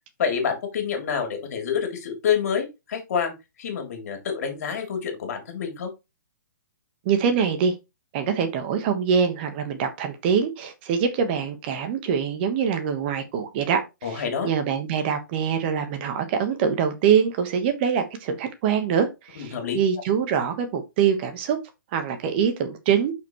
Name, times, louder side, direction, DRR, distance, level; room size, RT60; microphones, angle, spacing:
voice 1, 0.2-3.3 3.6-5.9 14.0-14.5 19.3-19.8, left 7 dB, 55° left, 3.2 m, -27 dB
voice 2, 7.0-7.8 8.1-21.6 21.9-23.1, right 7 dB, 30° right, 1.4 m, -24 dB
6.9 x 5.8 x 3.2 m
hypercardioid pair, 155°, 10 cm